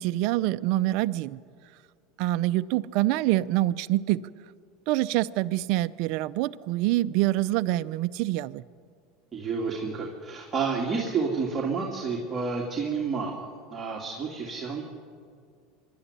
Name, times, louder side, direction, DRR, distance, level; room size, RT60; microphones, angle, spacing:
voice 1, 0.0-1.4 2.2-4.3 4.9-8.6, right 16 dB, 60° right, 15 dB, 0.6 m, -26 dB
voice 2, 9.3-14.8, right 5 dB, 25° right, -3 dB, 2.9 m, -30 dB
24.0 x 12.5 x 10.0 m, 2.2 s
supercardioid pair, 115°, 0 cm